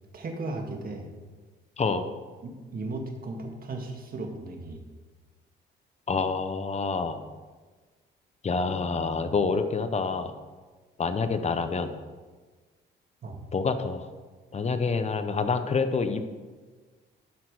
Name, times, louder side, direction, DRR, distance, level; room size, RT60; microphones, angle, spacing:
voice 1, 0.1-1.1 2.4-4.8 13.2-13.4, right 2 dB, 45° right, 2 dB, 1.9 m, -36 dB
voice 2, 6.1-7.2 8.4-10.3 11.0-11.9 13.5-14.1 14.5-16.2, left 4 dB, 35° left, 9 dB, 0.9 m, -27 dB
11.5 x 5.9 x 4.9 m, 1.4 s
cardioid pair, 90°, 20 cm